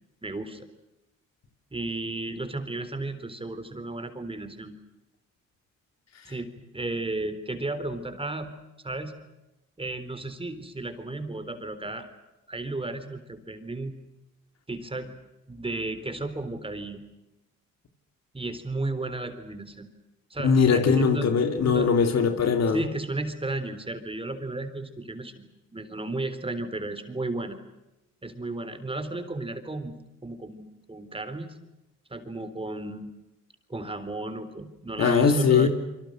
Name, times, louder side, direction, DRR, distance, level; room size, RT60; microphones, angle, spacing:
voice 1, 0.2-0.7 1.7-4.7 6.3-8.5 8.8-9.1 9.8-12.1 12.5-13.9 14.7-15.2 15.5-17.0 18.3-19.9 20.3-21.3 21.6-21.9 22.7-27.6 28.2-31.5 32.1-33.1 33.7-35.7, right 2 dB, 20° right, 9 dB, 3.9 m, -34 dB
voice 2, 20.4-22.8 35.0-35.7, left 6 dB, 60° left, 6 dB, 3.7 m, -21 dB
28.5 x 24.5 x 6.5 m, 0.96 s
cardioid pair, 90°, 30 cm